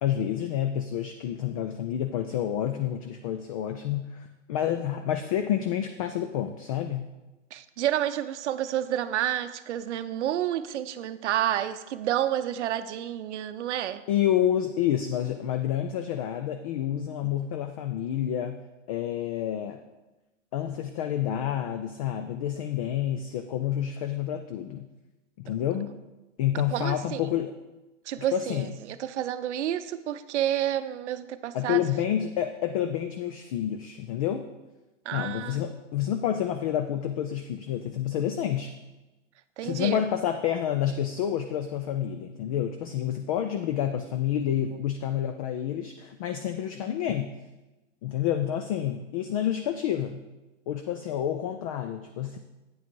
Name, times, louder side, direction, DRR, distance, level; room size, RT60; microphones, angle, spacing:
voice 1, 0.0-7.1 14.1-18.6 18.9-19.8 20.5-24.9 25.4-25.9 26.4-27.5 28.3-28.7 31.5-34.5 35.1-38.7 39.6-47.3 48.0-50.2 50.7-52.4, left 10 dB, 30° left, 7 dB, 0.4 m, -29 dB
voice 2, 7.5-14.0 17.2-17.3 26.7-27.3 28.1-31.8 35.1-35.6 39.6-40.0, right 11 dB, 65° right, 11 dB, 0.7 m, -30 dB
8.9 x 5.8 x 4.6 m, 1.1 s
hypercardioid pair, 130°, 37 cm